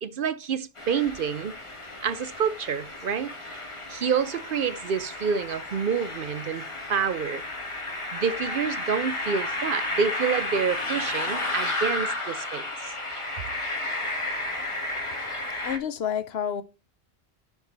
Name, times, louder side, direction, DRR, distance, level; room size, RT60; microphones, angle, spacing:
voice 1, 0.0-1.5 2.0-3.3 3.9-6.6 6.9-7.4 8.1-12.9, right 6 dB, 60° right, 0.7 m, -28 dB
sound 1, 0.8-15.8, left 2 dB, 25° left, 1.6 m, -32 dB
voice 2, 15.6-16.6, left 8 dB, 65° left, 0.9 m, -29 dB
10.5 x 4.6 x 3.9 m
omnidirectional pair, 1.1 m